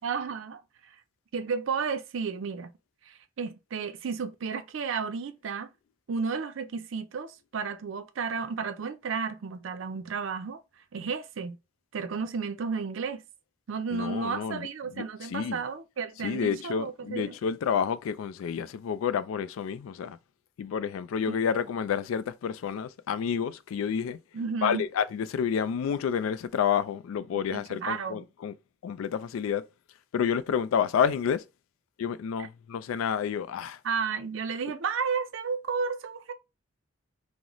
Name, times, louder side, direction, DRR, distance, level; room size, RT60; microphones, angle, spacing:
voice 1, 0.0-0.6 1.3-2.7 3.1-5.7 6.1-10.6 10.9-11.6 11.9-13.2 13.7-17.3 21.3-21.4 24.3-24.9 27.5-28.3 32.4-32.5 33.8-36.3, right 5 dB, 70° right, 0.4 m, -32 dB
voice 2, 13.9-14.7 15.0-15.1 15.3-15.6 16.2-20.2 20.6-24.2 24.6-28.5 28.8-29.6 30.1-31.4 32.0-33.8, left 7 dB, 85° left, 0.3 m, -29 dB
3.8 x 2.0 x 2.9 m
head